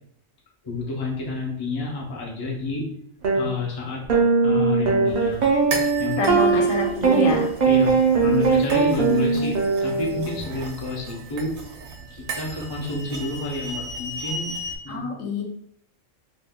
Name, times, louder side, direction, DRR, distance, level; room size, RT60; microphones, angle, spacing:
voice 1, 0.6-2.8 3.3-4.0 4.4-5.4 6.0-6.3 7.7-8.0 8.2-11.5 12.1-14.6 14.8-15.0, left 2 dB, 40° left, -2 dB, 0.3 m, -29 dB
sound 1, 3.2-3.4 4.1-10.4, right 4 dB, 60° right, 0.4 m, -20 dB
sound 2, 5.1-14.8, right 2 dB, 85° right, 1.0 m, -36 dB
voice 2, 6.2-7.5 14.9-15.4, left 4 dB, 75° left, 0 dB, 1.1 m, -26 dB
2.6 x 2.2 x 3.5 m, 0.71 s
omnidirectional pair, 1.4 m